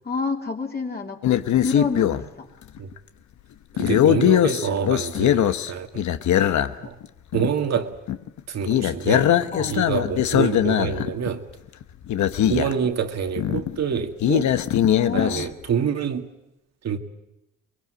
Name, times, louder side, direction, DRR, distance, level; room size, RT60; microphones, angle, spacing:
voice 1, 0.0-2.5 9.5-9.8 14.9-15.5, left 4 dB, 30° left, 1 dB, 3.1 m, -29 dB
sound 1, 1.2-2.2 2.8-3.0 3.8-7.0 7.3-7.5 7.8-7.9 8.1-8.4 8.7-11.3 11.8-11.9 12.1-12.9 13.4-15.5, left 11 dB, 70° left, 1.1 m, -21 dB
voice 2, 3.7-6.0 6.8-7.0 7.3-8.0 8.5-11.5 12.5-14.5 15.1-16.3 16.8-17.0, right 7 dB, 60° right, 6 dB, 2.1 m, -27 dB
23.5 x 21.5 x 7.9 m, 0.90 s
cardioid pair, 90°, 30 cm